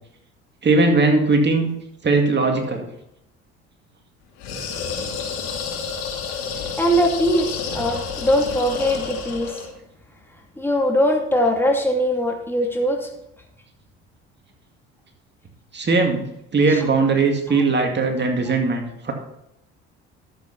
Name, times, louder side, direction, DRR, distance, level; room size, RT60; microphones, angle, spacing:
voice 1, 0.6-1.7 2.0-2.8 5.0-5.1 15.7-16.3 16.5-19.1, right 3 dB, 35° right, 3 dB, 2.2 m, -19 dB
sound 1, 4.4-9.7, left 5 dB, 75° left, 2.7 m, -30 dB
voice 2, 6.8-9.6 10.6-13.1 16.7-16.8 17.5-17.6, equal, 5° left, 0 dB, 2.8 m, -21 dB
11.5 x 8.0 x 4.2 m, 0.81 s
hypercardioid pair, 65°, 33 cm